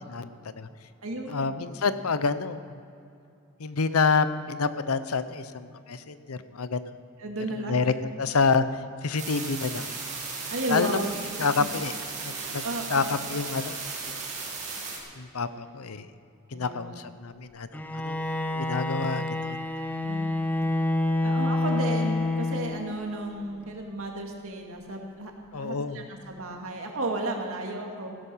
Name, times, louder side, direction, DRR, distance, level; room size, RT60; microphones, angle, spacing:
voice 1, 0.1-0.7 1.3-2.8 3.6-6.9 7.7-8.6 9.0-9.9 10.7-11.0 11.4-11.9 12.2-12.6 12.9-13.8 14.1-14.2 15.2-16.1 16.5-17.7 17.9-18.2 18.5-19.6 25.5-26.0, left 4 dB, 90° left, 13 dB, 0.7 m, -28 dB
voice 2, 1.0-1.5 7.2-7.8 10.5-11.7 12.3-13.2 16.5-16.9 20.0-20.7 21.2-28.1, right 2 dB, 70° right, 1 dB, 2.3 m, -34 dB
sound 1, 9.2-15.0, right 4 dB, 35° right, 3.2 m, -36 dB
Bowed string instrument, 17.7-23.1, left 2 dB, 10° left, 0.8 m, -28 dB
16.0 x 12.5 x 5.6 m, 2.6 s
head